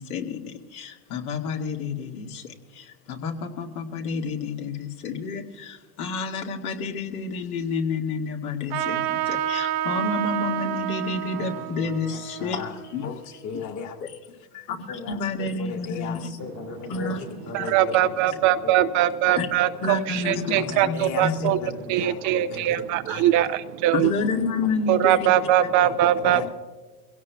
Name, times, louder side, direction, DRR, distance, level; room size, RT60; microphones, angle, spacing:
voice 1, 0.0-12.6 12.9-13.1 14.0-14.1 14.7-16.3 16.9-17.2 17.6-17.7 19.3-19.5 19.8-21.3 23.9-25.3, left 4 dB, 65° left, 1 dB, 2.1 m, -30 dB
Trumpet, 8.7-13.7, right 12 dB, 65° right, 1.6 m, -30 dB
voice 2, 11.3-14.0 14.5-18.1 18.6-18.7 19.3-19.4 20.5-23.3 24.6-24.7 25.8-26.5, left 6 dB, 35° left, 4 dB, 2.0 m, -37 dB
voice 3, 17.5-21.6 21.9-24.1 24.9-26.5, right 12 dB, 40° right, 11 dB, 0.6 m, -21 dB
24.0 x 17.0 x 2.3 m, 1.4 s
hypercardioid pair, 90°, 47 cm